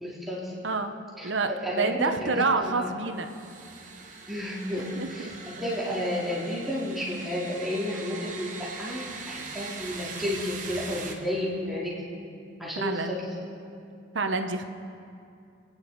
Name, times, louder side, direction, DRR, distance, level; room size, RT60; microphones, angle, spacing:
voice 1, 0.0-0.5 1.2-2.9 4.3-5.3 5.6-11.9 12.6-13.3, left 1 dB, ahead, -7 dB, 2.4 m, -32 dB
voice 2, 1.2-3.3 4.7-5.3 12.8-13.1 14.1-14.6, right 3 dB, 70° right, 7 dB, 0.9 m, -28 dB
sound 1, 3.1-11.1, right 4 dB, 40° right, 1.5 m, -41 dB
28.5 x 9.9 x 4.1 m, 2.5 s
head